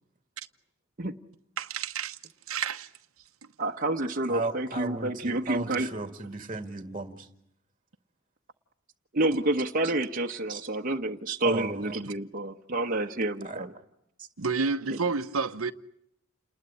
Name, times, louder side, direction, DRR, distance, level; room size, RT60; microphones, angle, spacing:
voice 1, 1.6-2.2 2.5-2.9 11.9-12.1 14.4-15.7, right 5 dB, 80° right, 1.0 m, -30 dB
voice 2, 3.6-5.9 9.1-13.7, right 2 dB, 40° right, 1.1 m, -29 dB
voice 3, 4.3-7.3 10.5-10.6 11.4-12.0 13.4-13.6, right 3 dB, 25° right, 1.8 m, -35 dB
29.5 x 20.5 x 9.9 m
head